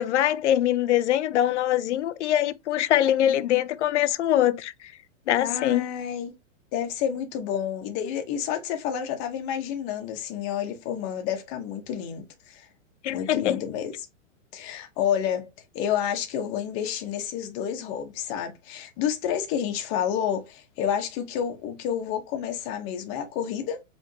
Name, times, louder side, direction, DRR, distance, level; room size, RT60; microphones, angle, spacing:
voice 1, 0.0-4.7 5.3-5.9 13.0-13.6, left 12 dB, 65° left, 0.6 m, -23 dB
voice 2, 5.4-6.3 6.7-12.7 13.1-13.9 14.5-15.5 15.7-23.8, left 9 dB, 30° left, 1.1 m, -29 dB
5.0 x 3.5 x 2.8 m
hypercardioid pair, 150°, 38 cm